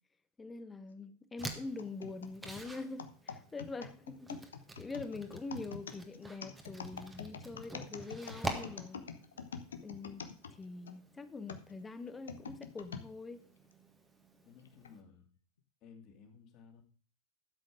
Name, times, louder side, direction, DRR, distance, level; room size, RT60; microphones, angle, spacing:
voice 1, 0.4-4.4 4.8-9.1 9.8-10.2 10.5-13.4, left 3 dB, 15° left, 1.1 m, -44 dB
sound 1, 1.4-11.0 11.5-13.1 13.7-13.8 14.7-14.9, left 6 dB, 65° left, 1.1 m, -46 dB
sound 2, 1.4-15.0, right 2 dB, 10° right, 1.7 m, -48 dB
voice 2, 14.4-15.4 15.8-16.8, left 6 dB, 35° left, 2.6 m, -57 dB
12.5 x 7.8 x 5.0 m
figure-of-eight pair, 90°, 0 cm